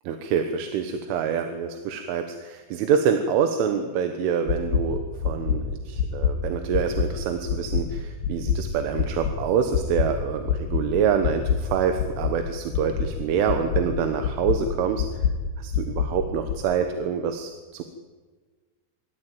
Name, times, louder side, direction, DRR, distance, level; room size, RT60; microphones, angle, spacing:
voice 1, 0.1-15.1 15.6-17.8, right 7 dB, 80° right, 6 dB, 3.8 m, -26 dB
sound 1, 4.5-4.8 5.2-5.6 6.0-6.3 6.7-7.1 7.5-7.8 8.2-8.6 9.0-9.3 9.7-10.1 10.5-10.8 11.2-11.6 12.0-12.3 12.7-13.1 13.5-13.8 14.2-14.6 15.0-15.3 15.7-16.1 16.5-16.6, left 8 dB, 55° left, 4.3 m, -23 dB
27.0 x 14.0 x 9.2 m, 1.4 s
omnidirectional pair, 5.6 m